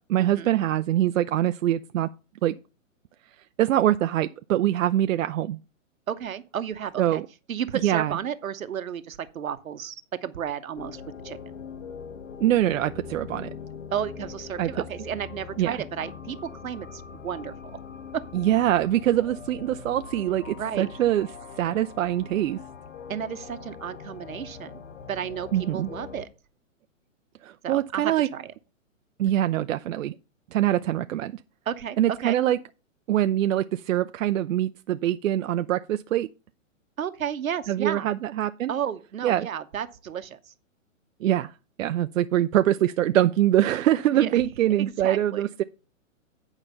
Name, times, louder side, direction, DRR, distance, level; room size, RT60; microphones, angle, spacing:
voice 1, 0.0-2.1 2.4-2.5 3.6-5.6 7.0-7.3 7.8-8.2 12.4-13.5 14.6-14.7 15.6-15.8 18.3-21.3 21.6-22.6 25.5-25.9 27.4-28.3 29.2-30.1 30.5-31.3 32.0-32.6 33.1-36.3 37.7-38.7 39.2-39.5 41.2-41.5 41.8-45.6, right 12 dB, 75° right, 0.5 m, -24 dB
voice 2, 6.1-7.2 7.5-11.4 13.9-17.8 18.1-18.2 20.5-20.9 23.1-26.3 27.6-28.5 31.7-32.0 32.2-32.4 37.0-38.1 38.7-40.5 44.1-44.4 44.8-45.4, right 9 dB, 90° right, 1.0 m, -33 dB
sound 1, 10.7-26.3, left 6 dB, 65° left, 1.3 m, -42 dB
9.0 x 4.9 x 5.4 m
hypercardioid pair, 150°, 40 cm